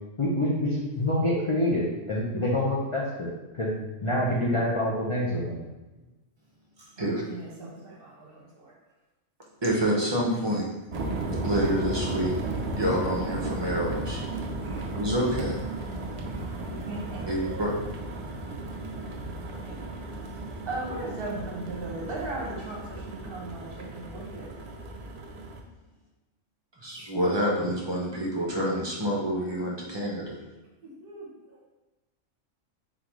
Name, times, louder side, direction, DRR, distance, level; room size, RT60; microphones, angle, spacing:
voice 1, 0.2-3.7 4.0-5.6, left 1 dB, 40° left, -5 dB, 0.4 m, -26 dB
voice 2, 6.8-8.7 14.6-14.8 16.3-17.6 19.6-19.9 20.7-24.5 31.0-31.3, right 2 dB, 50° right, -3 dB, 1.0 m, -38 dB
voice 3, 9.6-10.7 11.4-12.3 12.8-14.2 14.9-15.5 17.3-17.7 26.8-30.3, equal, 25° right, -3 dB, 0.7 m, -27 dB
sound 1, 10.9-25.6, right 2 dB, 75° right, 0.3 m, -34 dB
3.8 x 3.7 x 3.0 m, 1.1 s
omnidirectional pair, 1.3 m